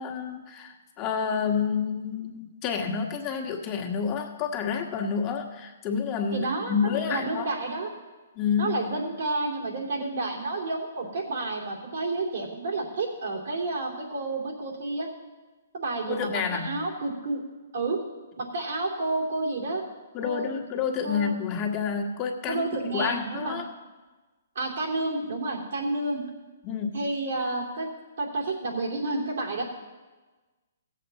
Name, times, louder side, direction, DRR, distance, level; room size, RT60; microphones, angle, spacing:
voice 1, 0.0-7.5 8.3-8.8 16.1-16.8 20.1-23.7 26.6-27.1, left 6 dB, 30° left, 1 dB, 1.5 m, -29 dB
voice 2, 6.3-7.9 8.6-15.1 15.7-17.4 17.7-18.0 18.4-19.8 20.2-20.5 21.0-21.4 22.5-23.6 24.5-26.2 26.9-27.9 28.2-29.6, right 2 dB, 70° right, -1 dB, 2.8 m, -30 dB
17.0 x 7.7 x 4.1 m, 1.2 s
hypercardioid pair, 135°, 0 cm